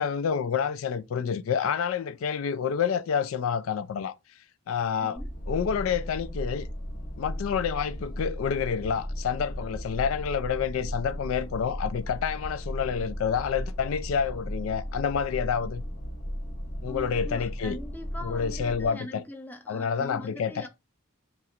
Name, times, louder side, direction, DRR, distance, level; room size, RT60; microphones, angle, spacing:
voice 1, 0.0-4.1 4.7-5.2 5.5-6.7 7.2-15.9 16.8-17.8 18.2-19.2 19.7-20.7, left 7 dB, 80° left, 0.3 m, -28 dB
voice 2, 5.0-5.3 16.9-20.7, equal, 10° left, 0.4 m, -42 dB
sound 1, 5.2-18.9, equal, 45° left, 1.1 m, -36 dB
3.0 x 2.4 x 4.3 m
head